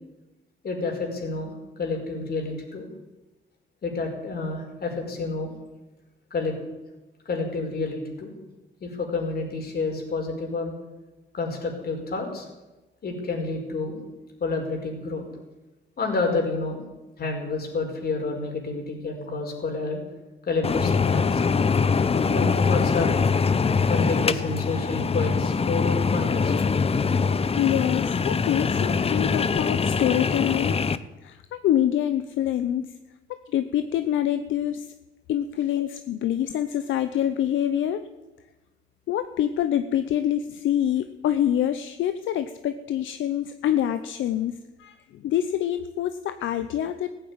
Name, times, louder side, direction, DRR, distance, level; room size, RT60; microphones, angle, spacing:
voice 1, 0.6-2.9 3.8-5.5 6.3-6.5 7.3-8.3 8.8-10.7 11.3-12.5 13.0-14.0 14.4-15.3 16.0-16.8 17.2-20.0 20.5-21.4 22.2-23.2 23.9-26.5, left 3 dB, 50° left, 2 dB, 5.2 m, -29 dB
sound 1, 20.6-31.0, left 5 dB, 30° left, 0.7 m, -23 dB
voice 2, 27.6-30.8 31.2-32.9 33.5-34.9 35.3-38.1 39.1-47.2, left 11 dB, 75° left, 10 dB, 0.8 m, -26 dB
15.5 x 9.1 x 9.6 m, 1.1 s
cardioid pair, 90°, 20 cm